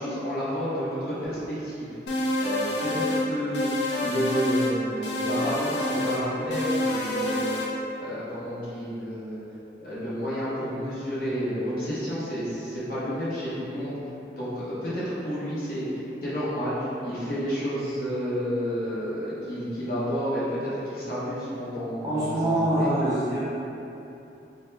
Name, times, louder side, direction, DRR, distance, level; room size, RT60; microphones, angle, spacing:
voice 1, 0.0-1.9 2.4-9.4 9.8-13.9 14.4-22.9, equal, 55° left, -10 dB, 0.8 m, -30 dB
sound 1, 2.1-3.3 3.5-4.7 5.0-6.2 6.5-7.7, left 1 dB, 75° left, 0.4 m, -27 dB
voice 2, 22.0-23.4, right 1 dB, 20° right, -11 dB, 0.7 m, -24 dB
2.7 x 2.2 x 3.2 m, 2.9 s
head